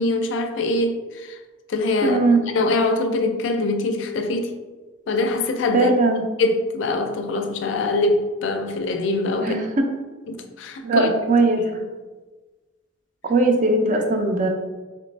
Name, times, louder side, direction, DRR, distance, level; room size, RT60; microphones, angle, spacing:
voice 1, 0.0-1.4 1.7-2.2 2.5-4.5 5.1-5.9 6.4-9.6 10.3-11.1 11.7-11.9, left 2 dB, 70° left, 0.4 m, -23 dB
voice 2, 2.0-2.4 5.7-6.3 9.4-9.9 10.8-11.7 13.2-14.5, right 2 dB, 40° right, 0.4 m, -19 dB
3.3 x 3.0 x 3.2 m
head